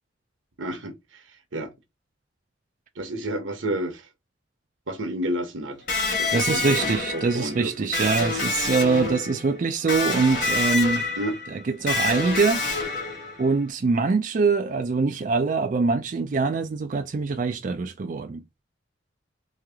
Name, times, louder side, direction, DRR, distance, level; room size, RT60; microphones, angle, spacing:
voice 1, 0.6-1.2 1.5-1.7 3.0-4.1 4.9-5.8 6.2-7.9 11.2-11.3, right 1 dB, 85° right, 1.1 m, -31 dB
Electric guitar, 5.9-13.6, left 3 dB, 40° left, 2.1 m, -27 dB
voice 2, 6.3-11.0 11.5-12.7 13.4-18.6, right 4 dB, 40° right, 0.3 m, -24 dB
3.7 x 3.2 x 3.4 m
head